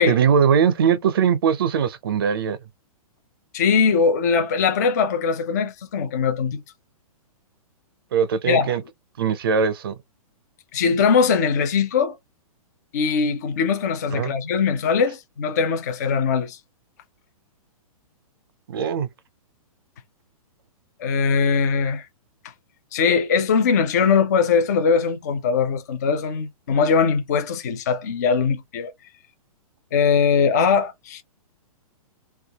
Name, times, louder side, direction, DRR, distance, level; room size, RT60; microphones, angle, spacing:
voice 1, 0.1-2.6 8.1-8.8 9.2-9.9 14.1-14.3 18.7-19.1, right 7 dB, 40° right, 0.5 m, -20 dB
voice 2, 3.5-6.6 8.5-8.8 10.7-12.2 12.9-16.6 21.0-22.1 22.9-28.9 29.9-31.2, left 5 dB, 30° left, 0.3 m, -21 dB
3.3 x 2.3 x 2.7 m
hypercardioid pair, 175°, 19 cm